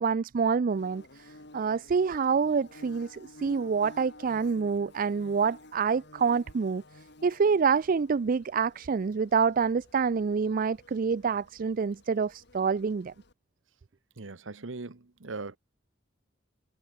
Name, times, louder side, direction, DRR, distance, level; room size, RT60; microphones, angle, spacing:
voice 1, 0.0-6.8 7.2-13.1, right 5 dB, 45° right, 0.4 m, -27 dB
Bird / Buzz, 0.7-13.3, left 2 dB, 60° left, 3.0 m, -53 dB
voice 2, 14.2-15.6, right 3 dB, 90° right, 1.1 m, -39 dB
head